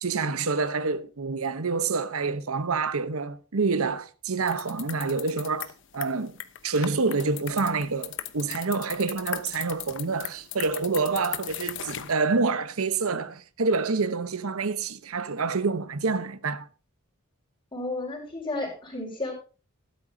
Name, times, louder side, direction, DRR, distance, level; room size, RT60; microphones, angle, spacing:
voice 1, 0.0-6.3 6.6-16.7, right 4 dB, 85° right, 0.9 m, -27 dB
sound 1, 4.5-12.1, left 11 dB, 60° left, 1.0 m, -37 dB
voice 2, 17.7-19.3, left 2 dB, 25° left, 5.2 m, -32 dB
14.0 x 12.0 x 2.7 m
head